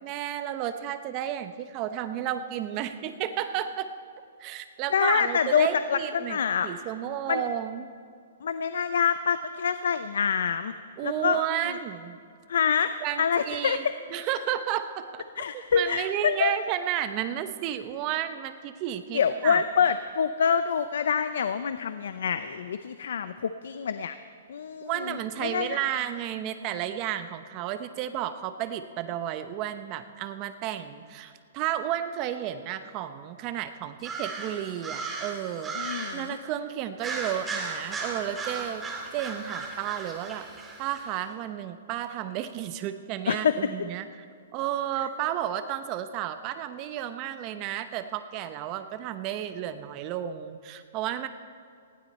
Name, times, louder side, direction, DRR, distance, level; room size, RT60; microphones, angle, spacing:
voice 1, 0.0-3.9 4.4-7.9 11.0-12.2 13.0-13.8 14.1-15.2 15.5-19.6 24.8-38.8 39.1-40.5 40.8-44.2 44.5-51.3, right 11 dB, 30° right, 9 dB, 0.8 m, -32 dB
voice 2, 4.9-6.7 7.3-7.4 8.4-10.7 11.0-11.8 12.5-12.9 13.2-13.9 15.4-16.5 19.1-24.2 24.5-25.8 35.8-36.4 43.3-43.6, left 7 dB, 75° left, 11 dB, 0.6 m, -26 dB
sound 1, 34.0-36.3 37.0-41.0, right 3 dB, 10° right, 1.9 m, -36 dB
19.5 x 15.5 x 4.3 m, 2.2 s
hypercardioid pair, 160°, 0 cm